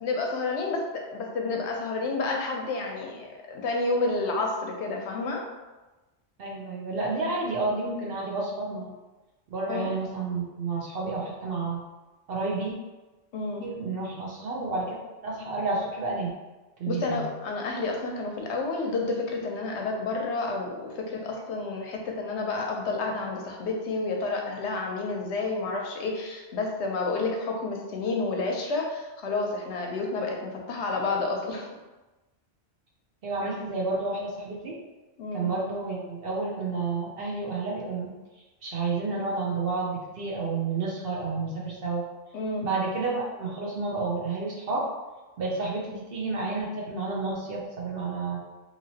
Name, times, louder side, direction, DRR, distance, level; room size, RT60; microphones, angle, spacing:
voice 1, 0.0-5.4 9.7-9.9 13.3-13.7 16.9-31.7 35.2-35.5 42.3-42.7, left 3 dB, 70° left, 1 dB, 0.8 m, -30 dB
voice 2, 6.4-9.0 9.5-11.8 12.3-12.7 13.6-15.0 15.2-16.3 16.8-17.2 33.2-34.7 35.3-38.1 38.6-42.1 42.6-44.9 45.4-48.4, right 3 dB, 60° right, -3 dB, 0.8 m, -30 dB
2.9 x 2.8 x 2.7 m, 1.1 s
omnidirectional pair, 1.2 m